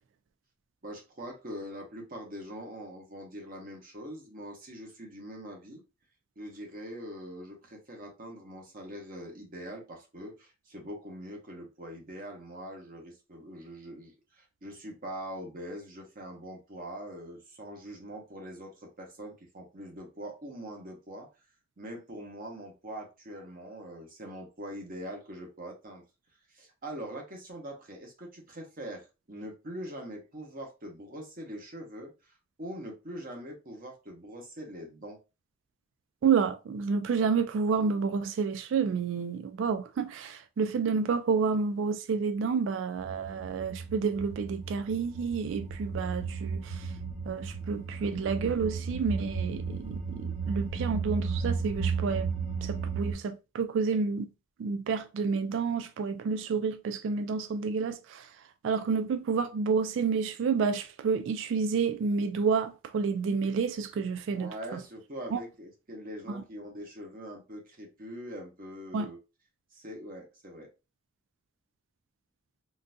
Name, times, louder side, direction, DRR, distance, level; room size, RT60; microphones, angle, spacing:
voice 1, 0.8-5.8 6.4-21.3 21.8-26.0 26.5-32.3 32.6-35.2 64.3-69.2 69.7-70.7, equal, 45° right, 1.0 m, -43 dB
voice 2, 36.2-46.9 47.3-52.3 52.6-54.3 54.6-58.3 58.6-64.8 65.3-65.4 66.3-66.4 68.9-69.1, right 5 dB, 65° right, 0.3 m, -29 dB
sound 1, 43.0-53.1, right 5 dB, 20° right, 0.8 m, -34 dB
3.8 x 2.6 x 2.2 m
head